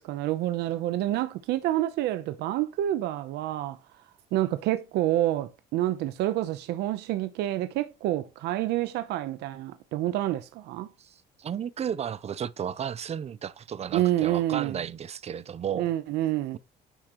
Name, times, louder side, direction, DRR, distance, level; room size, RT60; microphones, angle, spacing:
voice 1, 0.0-3.8 4.3-10.9 13.9-14.8 15.7-16.6, right 14 dB, 85° right, 0.8 m, -28 dB
voice 2, 11.0-15.9, right 8 dB, 40° right, 0.7 m, -33 dB
10.5 x 6.4 x 3.1 m
cardioid pair, 110°, 17 cm